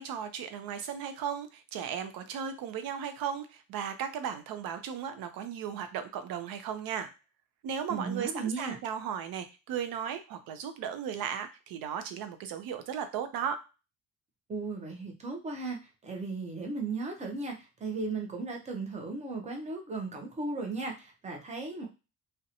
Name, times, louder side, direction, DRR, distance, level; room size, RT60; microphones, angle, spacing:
voice 1, 0.0-7.1 7.6-13.6, right 8 dB, 75° right, 9 dB, 0.5 m, -36 dB
voice 2, 7.9-8.8 14.5-21.9, right 3 dB, 20° right, 2 dB, 0.5 m, -36 dB
2.5 x 2.1 x 2.7 m, 0.29 s
cardioid pair, 175°, 36 cm